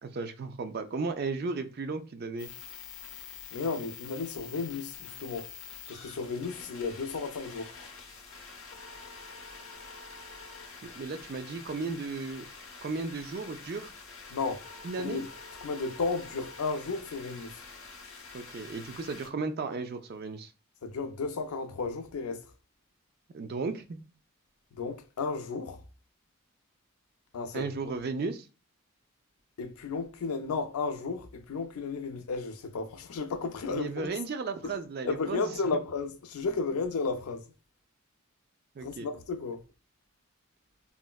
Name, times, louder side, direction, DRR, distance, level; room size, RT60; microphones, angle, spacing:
voice 1, 0.0-2.5 10.8-12.5 12.8-13.9 14.8-15.2 18.3-20.5 23.3-24.0 27.5-28.5 33.7-35.5 38.8-39.1, right 4 dB, 45° right, 0.3 m, -35 dB
sound 1, 2.4-19.3, left 5 dB, 70° left, 0.8 m, -47 dB
voice 2, 3.5-5.5 5.9-7.7 14.3-14.6 15.0-15.3 15.6-17.6 20.8-22.5 24.7-25.8 27.3-27.7 29.6-34.1 34.6-34.7 35.0-37.5 38.8-39.6, left 4 dB, 85° left, 0.4 m, -33 dB
3.6 x 2.1 x 2.2 m
head